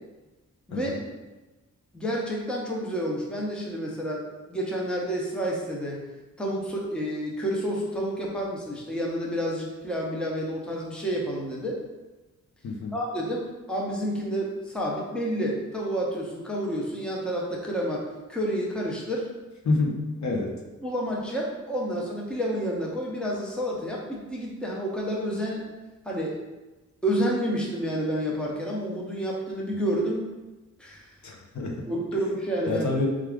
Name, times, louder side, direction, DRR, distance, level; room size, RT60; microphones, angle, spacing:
voice 1, 0.7-1.0 12.6-12.9 19.6-20.5 31.2-31.8 32.7-33.1, left 3 dB, 65° left, 0 dB, 0.7 m, -27 dB
voice 2, 1.9-6.0 6.4-11.8 12.9-18.0 18.3-19.3 20.8-25.6 26.1-26.4 27.0-30.3 30.8-31.0 31.9-32.9, equal, 5° left, -3 dB, 0.6 m, -29 dB
4.6 x 2.4 x 3.4 m, 1.1 s
wide cardioid pair, 150°, 31 cm